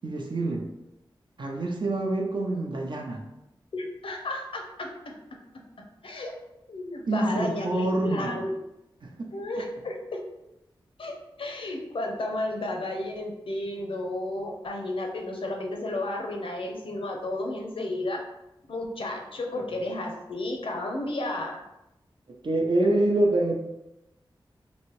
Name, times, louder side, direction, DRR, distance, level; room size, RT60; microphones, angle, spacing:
voice 1, 0.0-0.7 1.4-3.2 7.1-8.5 9.0-9.1 22.4-23.5, right 2 dB, 60° right, 1 dB, 0.6 m, -26 dB
voice 2, 3.7-4.9 6.0-6.3 6.7-8.5 9.3-10.2 11.0-18.2 18.7-21.6, left 2 dB, 75° left, 1 dB, 0.6 m, -32 dB
3.1 x 2.7 x 3.1 m, 0.92 s
wide cardioid pair, 60°, 9 cm